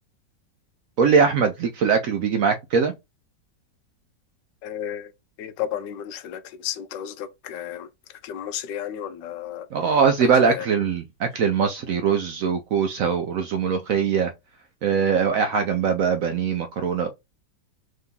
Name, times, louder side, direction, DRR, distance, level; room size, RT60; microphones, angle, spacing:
voice 1, 1.0-2.9 9.7-14.3 14.8-17.1, right 6 dB, 70° right, 0.8 m, -21 dB
voice 2, 4.6-5.1 5.4-9.7 10.2-10.7, left 10 dB, 85° left, 1.3 m, -33 dB
3.8 x 2.8 x 3.6 m
omnidirectional pair, 1.9 m